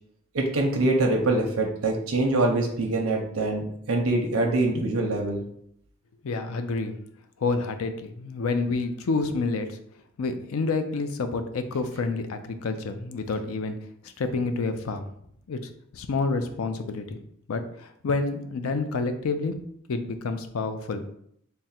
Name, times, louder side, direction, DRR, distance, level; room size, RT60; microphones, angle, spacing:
voice 1, 0.3-5.4, right 2 dB, 80° right, 1 dB, 0.6 m, -24 dB
voice 2, 6.2-7.0 7.4-9.8 10.2-13.7 14.2-15.1 15.5-15.6 15.9-17.2 17.5-19.5 19.9-21.0, left 3 dB, 85° left, 8 dB, 0.4 m, -28 dB
3.6 x 2.0 x 4.2 m, 0.69 s
head